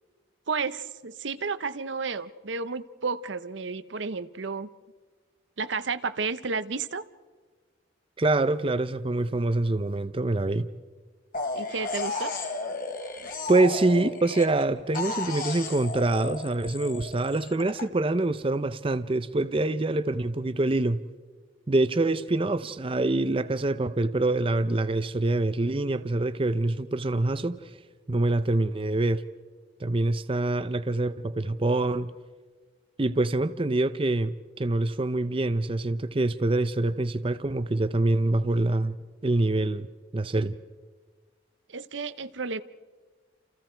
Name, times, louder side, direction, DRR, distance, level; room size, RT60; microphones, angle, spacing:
voice 1, 0.5-4.7 5.6-7.0 11.6-12.3 41.7-42.6, right 4 dB, 75° right, 0.8 m, -32 dB
voice 2, 8.2-10.7 13.5-21.0 21.7-27.6 28.1-29.2 29.8-32.1 33.0-39.0 39.2-39.9 40.1-40.5, right 2 dB, 30° right, 0.6 m, -25 dB
sound 1, 11.3-14.6 14.9-17.8, left 3 dB, 50° left, 3.2 m, -34 dB
29.5 x 28.5 x 4.5 m
head